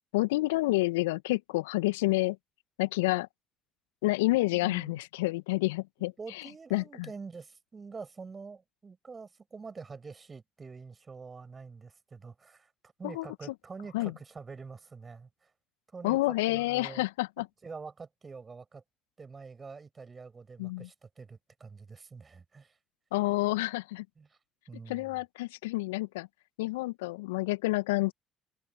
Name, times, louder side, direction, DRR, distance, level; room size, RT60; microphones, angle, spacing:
voice 1, 0.1-2.4 2.8-3.3 4.0-6.4 6.7-6.8 13.0-13.3 13.9-14.1 16.0-17.5 20.6-20.9 23.1-24.1 24.9-26.3 26.6-28.1, left 20 dB, 75° left, 1.7 m, -29 dB
voice 2, 4.6-5.0 6.0-12.7 13.0-15.5 15.9-17.0 17.6-18.8 19.2-22.8 24.2-24.4 24.7-25.2, right 4 dB, 30° right, 6.5 m, -46 dB
figure-of-eight pair, 50°, 0 cm